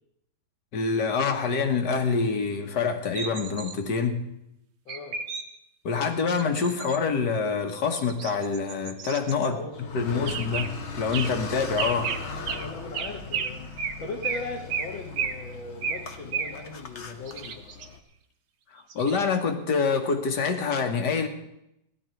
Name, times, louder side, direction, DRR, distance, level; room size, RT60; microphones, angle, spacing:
voice 1, 0.7-4.2 5.8-9.6 9.9-10.7 11.0-12.1 18.7-21.3, left 5 dB, 65° left, 6 dB, 1.9 m, -26 dB
sound 1, 3.2-3.8 4.9-5.4 6.3-7.0 8.0-9.5 10.3-10.7 11.1-11.3 11.8-12.2 12.5-12.7 12.9-13.5 13.8-14.0 14.2-14.4 14.7-14.9 15.2-15.4 15.8-16.0 16.3-16.5 17.3-17.9 18.9-19.4 20.1-20.2, right 6 dB, 80° right, 1.7 m, -32 dB
voice 2, 4.9-5.2 9.5-10.4 12.5-17.6, left 3 dB, 90° left, 0 dB, 2.0 m, -39 dB
Car, 9.7-18.0, left 4 dB, 45° left, 1.1 m, -39 dB
16.0 x 11.0 x 4.5 m, 0.82 s
omnidirectional pair, 2.0 m